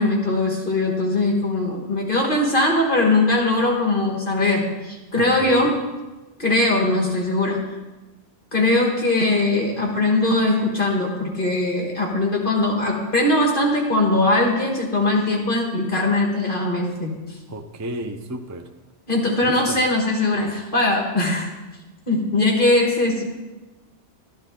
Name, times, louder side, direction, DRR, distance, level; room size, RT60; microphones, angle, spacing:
voice 1, 0.0-5.8 6.4-7.6 8.5-17.2 19.1-21.5 22.1-23.2, left 2 dB, 45° left, 0 dB, 1.8 m, -20 dB
voice 2, 5.2-5.7 17.5-18.6 19.4-19.8, right 1 dB, 20° right, 6 dB, 0.5 m, -33 dB
13.0 x 12.0 x 3.8 m, 1.1 s
omnidirectional pair, 1.2 m